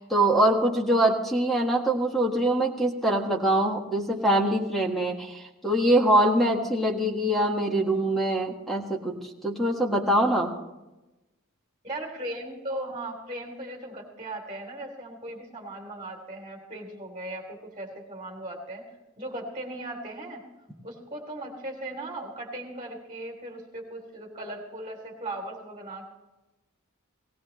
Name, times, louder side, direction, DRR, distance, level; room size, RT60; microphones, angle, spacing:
voice 1, 0.0-10.5, right 1 dB, ahead, 0 dB, 1.6 m, -24 dB
voice 2, 11.8-18.8 19.2-20.4 20.8-26.1, right 1 dB, 25° right, 0 dB, 2.9 m, -38 dB
18.5 x 18.0 x 3.2 m, 1.0 s
head